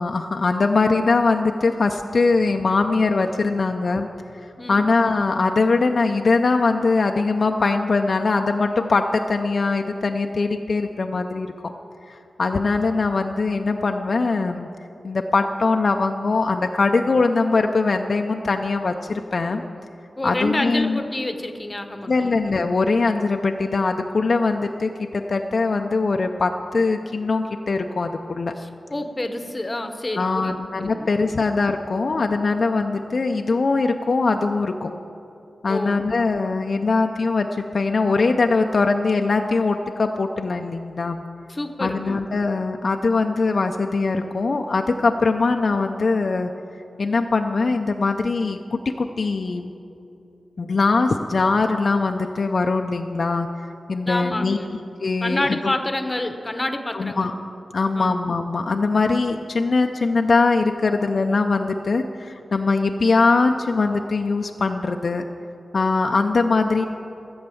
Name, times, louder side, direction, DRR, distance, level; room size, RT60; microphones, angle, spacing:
voice 1, 0.0-4.1 4.7-11.7 12.1-14.7 15.0-19.6 20.2-21.0 22.1-28.5 30.2-34.9 35.6-41.2 41.8-46.5 47.0-49.7 50.6-54.6 55.0-55.7 56.9-57.3 57.7-65.2 65.7-66.8, left 3 dB, 55° left, 5 dB, 0.5 m, -21 dB
voice 2, 20.2-22.3 28.6-31.4 35.7-36.0 41.5-42.2 54.0-54.8 55.2-57.4 58.0-58.1, left 1 dB, 20° left, 6 dB, 0.8 m, -28 dB
15.0 x 7.9 x 7.0 m, 2.8 s
wide cardioid pair, 120°, 0 cm